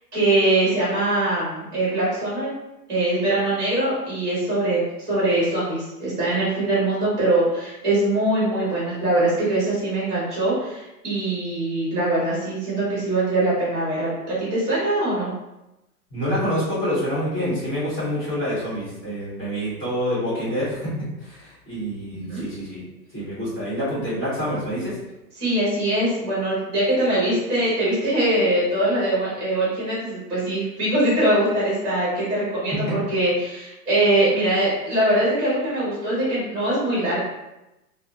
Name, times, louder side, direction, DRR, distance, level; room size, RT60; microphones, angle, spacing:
voice 1, 0.1-2.5 2.9-15.3 22.1-22.4 25.4-37.2, right 1 dB, 10° right, -9 dB, 1.3 m, -22 dB
voice 2, 16.1-20.9 21.2-22.8 23.1-25.0, equal, 15° left, -9 dB, 1.2 m, -27 dB
3.4 x 2.0 x 2.7 m, 0.95 s
hypercardioid pair, 170°, 48 cm